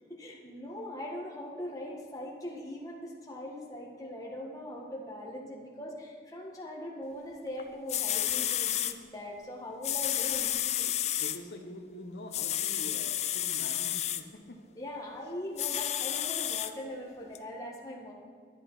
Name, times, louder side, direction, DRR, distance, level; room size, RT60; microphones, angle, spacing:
voice 1, 0.1-11.0 14.7-18.1, left 1 dB, 20° left, -2 dB, 1.7 m, -41 dB
sound 1, 7.6-7.7 7.9-8.9 9.8-11.4 12.3-14.2 15.6-16.7 17.3-17.4, left 12 dB, 40° left, 0.5 m, -31 dB
voice 2, 11.2-14.6, left 1 dB, 80° left, 3 dB, 1.3 m, -45 dB
11.0 x 10.0 x 5.7 m, 2.1 s
head